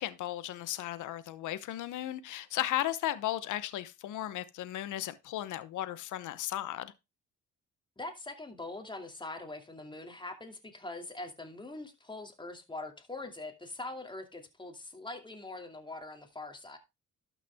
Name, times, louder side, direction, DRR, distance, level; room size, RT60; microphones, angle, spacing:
voice 1, 0.0-6.9, left 13 dB, 80° left, 0.9 m, -35 dB
voice 2, 8.0-16.8, left 2 dB, 15° left, 2.4 m, -43 dB
12.0 x 5.8 x 3.5 m
cardioid pair, 90°, 30 cm